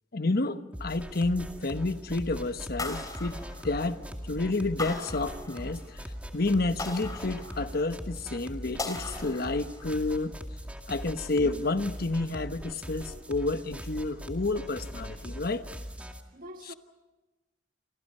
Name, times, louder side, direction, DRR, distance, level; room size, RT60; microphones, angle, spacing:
voice 1, 0.1-5.8 6.3-10.4 10.9-15.7, left 2 dB, 55° left, 1.1 m, -30 dB
sound 1, 0.7-16.2, equal, 10° right, 2.2 m, -41 dB
sound 2, 2.8-4.1 4.8-6.0 6.8-8.0 8.8-10.0, left 2 dB, 20° left, 3.1 m, -39 dB
voice 2, 16.3-16.7, equal, 50° right, 1.5 m, -47 dB
29.5 x 25.5 x 5.6 m
head